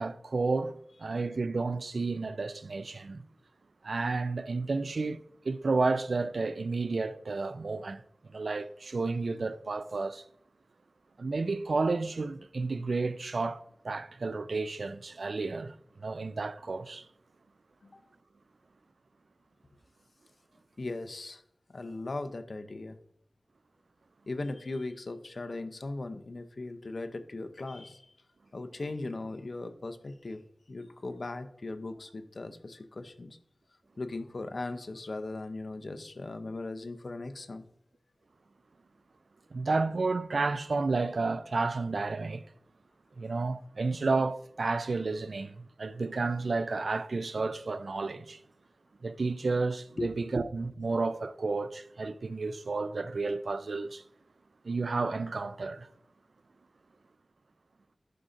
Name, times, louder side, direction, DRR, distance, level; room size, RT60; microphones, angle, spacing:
voice 1, 0.0-3.2 3.8-8.0 8.3-10.2 11.2-17.1 39.5-42.4 43.2-48.4 49.0-54.0 54.6-55.9, right 3 dB, 75° right, 0.3 m, -31 dB
voice 2, 20.8-21.4 21.7-23.0 24.3-28.1 28.5-30.4 30.7-33.4 34.0-37.6 50.0-50.1, left 2 dB, 60° left, 0.6 m, -38 dB
11.5 x 5.0 x 2.5 m
wide cardioid pair, 80°, 0 cm